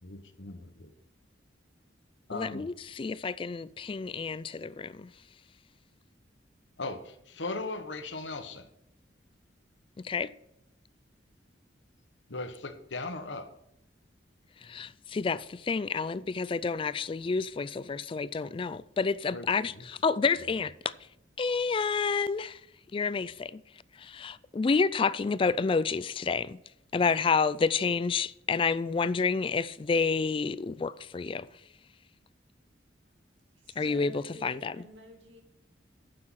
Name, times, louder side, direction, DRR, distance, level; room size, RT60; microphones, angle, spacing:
voice 1, 0.0-0.9 2.3-2.7 6.8-8.7 12.3-13.5 19.3-19.5 19.7-19.9 20.4-20.5, left 3 dB, 80° left, 1.1 m, -38 dB
voice 2, 2.3-5.1 10.0-10.3 14.6-20.7 21.4-22.6 22.9-23.6 24.0-26.6 26.9-31.5 33.8-34.1 34.4-34.7, left 5 dB, 30° left, 0.3 m, -29 dB
voice 3, 33.5-35.4, equal, 85° right, 2.5 m, -50 dB
9.9 x 6.7 x 5.7 m
head